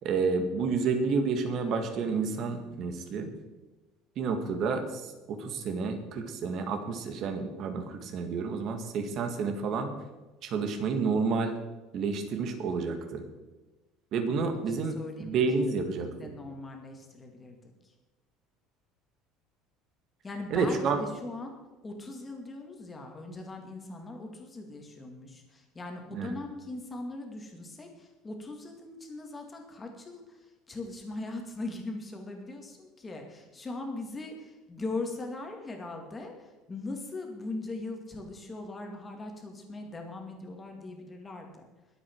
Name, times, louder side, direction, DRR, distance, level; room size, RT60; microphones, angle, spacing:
voice 1, 0.0-3.3 4.2-9.9 10.4-11.6 11.9-13.2 14.1-16.1 20.5-21.0 26.1-26.4, right 4 dB, 40° right, 6 dB, 1.9 m, -30 dB
voice 2, 14.9-15.3 15.8-17.6 20.2-21.5 21.8-41.7, left 2 dB, 15° left, 3 dB, 2.2 m, -40 dB
22.0 x 8.2 x 4.7 m, 1.1 s
cardioid pair, 170°, 0 cm